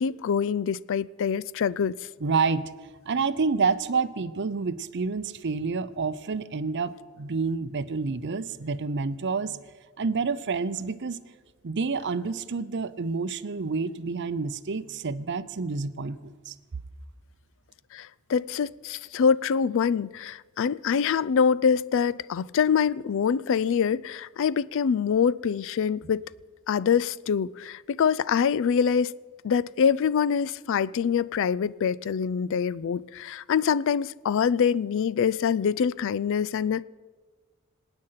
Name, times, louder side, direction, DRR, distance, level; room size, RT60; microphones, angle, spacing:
voice 1, 0.0-1.9 17.9-26.2 26.7-29.1 29.4-36.8, left 7 dB, 60° left, 0.4 m, -25 dB
voice 2, 2.2-2.7 3.1-9.6 10.0-11.2 11.6-16.5, right 4 dB, 55° right, 0.6 m, -28 dB
26.5 x 9.0 x 5.7 m
head